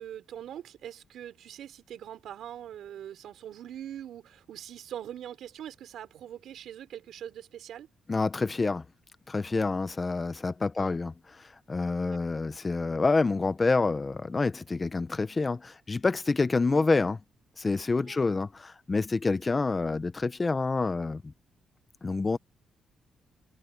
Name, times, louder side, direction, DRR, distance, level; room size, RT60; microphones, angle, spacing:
voice 1, 0.0-7.9 10.8-10.9 12.1-12.2 18.0-18.2, right 10 dB, 75° right, 4.6 m, -43 dB
voice 2, 8.1-8.8 9.3-17.2 17.6-21.3 22.0-22.4, left 3 dB, 25° left, 0.7 m, -27 dB
cardioid pair, 130°, 0 cm